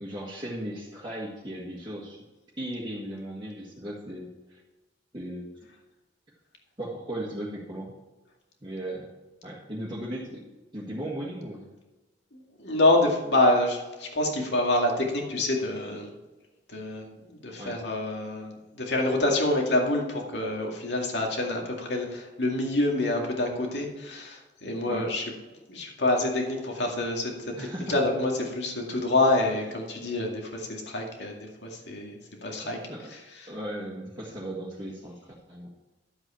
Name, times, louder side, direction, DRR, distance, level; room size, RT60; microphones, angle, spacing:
voice 1, 0.0-2.2 2.6-4.6 5.1-5.5 6.8-7.9 8.6-9.1 9.4-11.7 17.6-17.8 24.8-25.1 27.5-28.0 32.9-33.1 33.5-35.2 35.5-35.7, right 1 dB, 25° right, -5 dB, 1.6 m, -36 dB
voice 2, 12.3-16.1 16.7-25.3 25.7-32.8 33.1-33.5, left 2 dB, 70° left, 1 dB, 2.2 m, -27 dB
12.0 x 7.9 x 4.4 m, 1.1 s
head